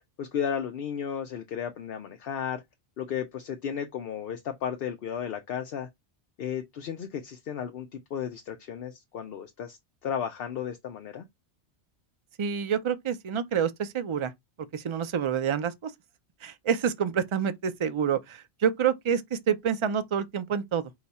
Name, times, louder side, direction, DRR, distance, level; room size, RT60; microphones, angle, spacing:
voice 1, 0.2-2.6 3.0-5.9 6.4-11.2, left 8 dB, 65° left, 0.8 m, -34 dB
voice 2, 12.4-14.3 14.7-15.9 16.4-20.9, right 7 dB, 55° right, 0.3 m, -28 dB
4.8 x 2.3 x 4.0 m
omnidirectional pair, 1.1 m